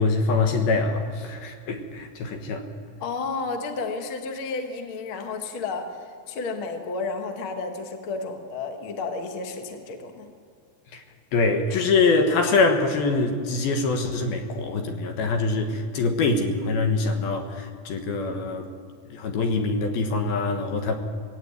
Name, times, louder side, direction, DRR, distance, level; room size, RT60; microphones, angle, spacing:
voice 1, 0.0-2.6 10.9-11.0 11.3-18.7 19.1-21.0, left 3 dB, 70° left, 5 dB, 3.1 m, -24 dB
voice 2, 3.0-5.9 6.3-10.3 15.6-15.8, left 4 dB, 50° left, 5 dB, 1.7 m, -32 dB
20.0 x 16.5 x 9.7 m, 2.1 s
omnidirectional pair, 4.8 m